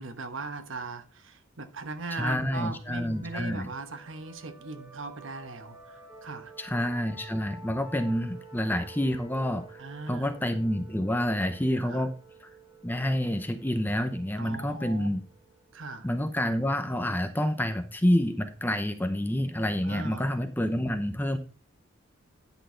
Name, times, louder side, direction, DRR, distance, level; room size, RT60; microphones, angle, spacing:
voice 1, 0.0-6.5 9.8-10.3 11.8-12.1 14.4-15.1 15.7-16.1 19.8-20.3, right 3 dB, 65° right, 9 dB, 1.1 m, -39 dB
voice 2, 2.1-3.7 6.6-9.8 10.1-12.1 12.8-15.2 16.0-21.4, equal, 10° left, 8 dB, 0.7 m, -28 dB
sound 1, 2.2-17.5, right 3 dB, 15° right, 3.7 m, -51 dB
10.0 x 6.3 x 3.9 m, 0.37 s
head